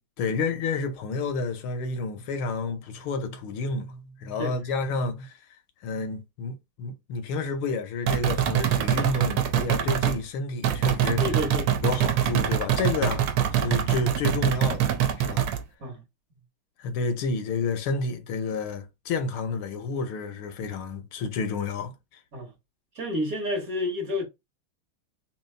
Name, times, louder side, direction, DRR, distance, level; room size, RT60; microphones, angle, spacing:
voice 1, 0.2-5.3 5.8-11.2 11.8-13.3 13.5-14.8 15.2-15.5 16.8-21.9, left 4 dB, 80° left, 1.6 m, -30 dB
sound 1, 8.1-10.2 10.6-15.6, right 10 dB, 85° right, 1.6 m, -24 dB
voice 2, 11.2-11.7 12.0-12.1 15.8-16.0 22.3-22.5 22.9-24.2, left 1 dB, 45° right, 1.4 m, -30 dB
3.8 x 3.0 x 3.2 m
omnidirectional pair, 2.3 m